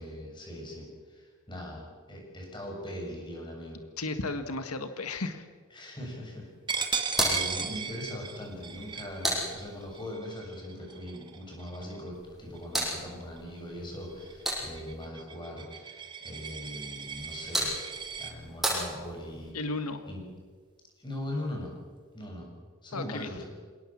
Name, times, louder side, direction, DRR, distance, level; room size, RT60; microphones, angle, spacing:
voice 1, 0.0-3.8 5.7-7.0 7.2-17.8 18.2-19.5 20.1-20.2 21.0-21.7 22.1-22.5 22.8-23.5, left 1 dB, 20° left, 0 dB, 7.1 m, -40 dB
voice 2, 4.0-5.5 6.8-7.0 19.5-20.1 22.9-23.3, left 3 dB, 85° left, 8 dB, 1.6 m, -34 dB
Coin (dropping), 6.7-12.1 12.5-12.8 13.2-18.3, right 6 dB, 20° right, 1.7 m, -37 dB
sound 1, 7.1-10.1 12.1-15.1 17.0-19.5, right 1 dB, ahead, 7.2 m, -35 dB
27.0 x 18.5 x 7.4 m, 1.5 s
head